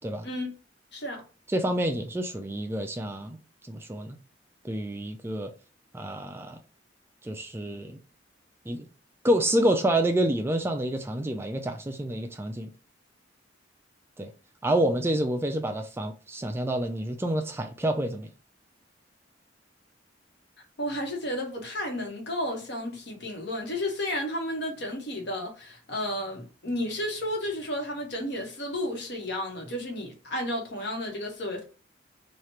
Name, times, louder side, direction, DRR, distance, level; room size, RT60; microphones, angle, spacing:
voice 1, 0.9-1.2 20.8-31.6, left 1 dB, 60° left, 1.1 m, -32 dB
voice 2, 1.5-3.4 3.7-4.2 4.6-5.5 5.9-6.6 7.2-8.0 8.7-8.9 9.2-12.7 14.2-14.3 14.6-18.3, right 1 dB, 15° right, 0.3 m, -28 dB
3.1 x 2.4 x 4.3 m
head